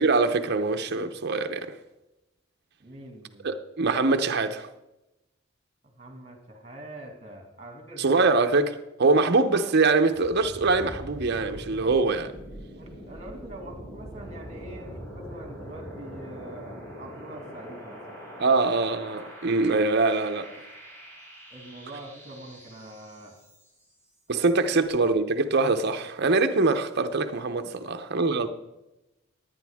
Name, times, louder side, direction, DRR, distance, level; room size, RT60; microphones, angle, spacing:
voice 1, 0.0-1.8 3.4-4.7 8.0-12.3 18.4-20.5 24.3-28.5, right 3 dB, 50° right, 0.7 m, -23 dB
voice 2, 2.8-3.5 5.8-8.1 9.0-9.2 12.8-18.6 21.5-23.4 24.3-24.5 27.6-27.7, right 1 dB, 30° right, 2.1 m, -44 dB
sound 1, 10.1-23.9, equal, 15° left, 5.0 m, -43 dB
16.5 x 9.3 x 3.6 m
head